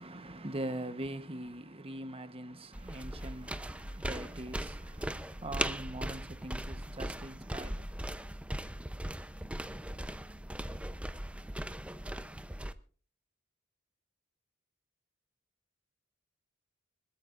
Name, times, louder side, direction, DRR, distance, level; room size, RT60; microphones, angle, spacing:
voice 1, 0.0-7.9, right 1 dB, 30° right, 1.1 m, -42 dB
sound 1, 2.7-12.7, right 1 dB, 5° right, 0.7 m, -39 dB
22.0 x 20.0 x 2.6 m
head